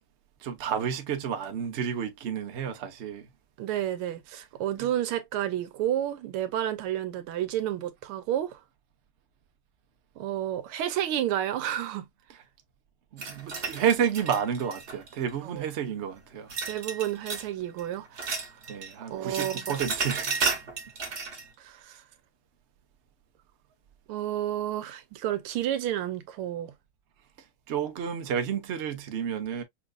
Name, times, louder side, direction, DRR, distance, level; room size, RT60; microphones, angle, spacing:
voice 1, 0.4-3.3 4.8-4.9 13.1-16.5 18.7-20.6 27.7-29.6, right 8 dB, 70° right, 0.6 m, -30 dB
voice 2, 3.6-8.6 10.2-12.1 15.4-15.6 16.6-18.5 19.1-19.7 21.6-22.0 24.1-26.7, right 11 dB, 90° right, 1.6 m, -31 dB
sound 1, 13.2-15.3 16.5-17.5 17.8-18.9 19.2-21.5, right 4 dB, 40° right, 1.1 m, -33 dB
5.7 x 2.5 x 2.4 m
omnidirectional pair, 2.4 m